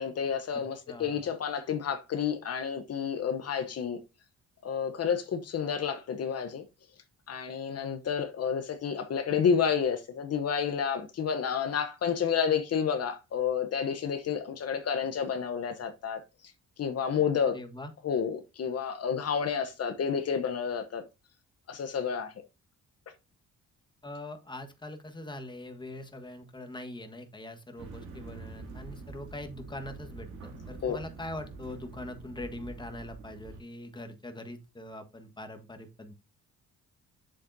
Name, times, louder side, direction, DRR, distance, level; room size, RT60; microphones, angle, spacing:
voice 1, 0.0-4.0 4.6-6.6 7.3-16.5 16.8-17.6 18.0-21.0 21.7-22.3 30.8-31.0, left 7 dB, 55° left, 1.0 m, -30 dB
voice 2, 0.5-1.2 17.5-17.9 24.0-36.1, left 1 dB, 15° left, 1.5 m, -42 dB
sound 1, 27.8-33.6, right 3 dB, 75° right, 2.7 m, -45 dB
7.6 x 7.3 x 2.7 m
cardioid pair, 90°, 30 cm